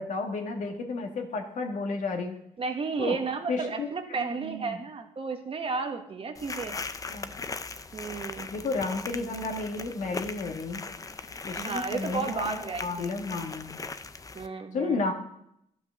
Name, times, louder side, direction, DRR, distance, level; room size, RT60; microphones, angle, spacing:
voice 1, 0.0-2.4 3.0-3.2 3.5-4.8 7.1-7.4 8.5-10.8 11.4-13.8 14.7-15.1, left 3 dB, 60° left, 3 dB, 1.8 m, -32 dB
voice 2, 2.6-6.8 7.9-8.5 11.6-13.1 14.3-15.1, right 4 dB, 40° right, 5 dB, 1.4 m, -33 dB
sound 1, 6.3-14.5, left 4 dB, 25° left, 0.6 m, -39 dB
11.5 x 6.0 x 6.3 m, 0.76 s
cardioid pair, 95°, 15 cm